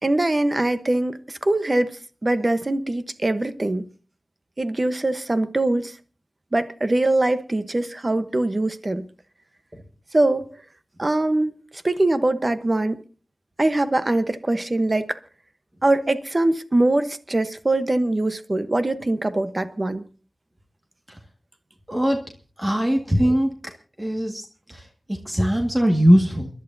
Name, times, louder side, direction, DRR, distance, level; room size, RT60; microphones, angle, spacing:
voice 1, 0.0-3.9 4.6-5.9 6.5-9.1 10.1-10.5 11.0-11.5 11.8-13.0 13.6-15.2 15.8-20.0, right 2 dB, 35° right, 1.0 m, -22 dB
voice 2, 21.9-22.2 22.6-23.7 24.0-26.5, equal, 20° right, 1.9 m, -21 dB
29.5 x 11.0 x 2.7 m
wide cardioid pair, 65°, 0 cm